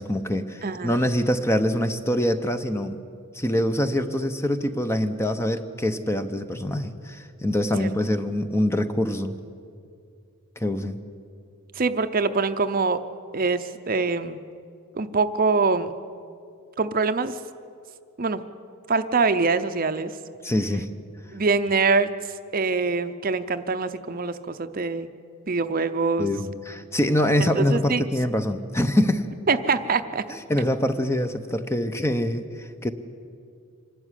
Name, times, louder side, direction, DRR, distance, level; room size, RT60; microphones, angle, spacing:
voice 1, 0.0-3.0 3.3-9.3 10.6-11.0 20.4-20.9 26.2-29.3 30.3-32.9, left 1 dB, 10° left, 9 dB, 0.8 m, -24 dB
voice 2, 0.6-1.0 7.8-7.9 11.8-13.0 13.3-14.4 15.0-15.9 16.8-17.4 18.2-18.4 18.9-20.1 21.3-22.1 22.5-25.1 25.5-26.3 27.4-28.0 29.5-30.2, right 4 dB, 40° right, 10 dB, 0.7 m, -24 dB
25.5 x 12.5 x 9.9 m, 2.4 s
head